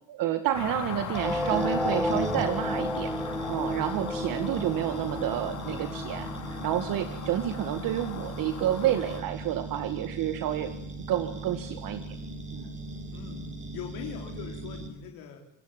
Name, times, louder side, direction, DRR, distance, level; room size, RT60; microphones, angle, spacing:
voice 1, 0.1-3.1 3.5-6.3 6.6-10.7 11.1-12.0 12.5-12.7, right 11 dB, 65° right, 8 dB, 2.1 m, -29 dB
sound 1, 0.5-9.2, left 7 dB, 50° left, 4.4 m, -39 dB
sound 2, 1.1-8.1, left 1 dB, ahead, 3.7 m, -33 dB
sound 3, 1.1-14.9, right 2 dB, 20° right, 5.8 m, -39 dB
voice 2, 13.1-13.4 13.7-15.4, left 8 dB, 75° left, 2 dB, 4.5 m, -41 dB
27.5 x 19.5 x 9.2 m, 0.72 s
cardioid pair, 105°, 36 cm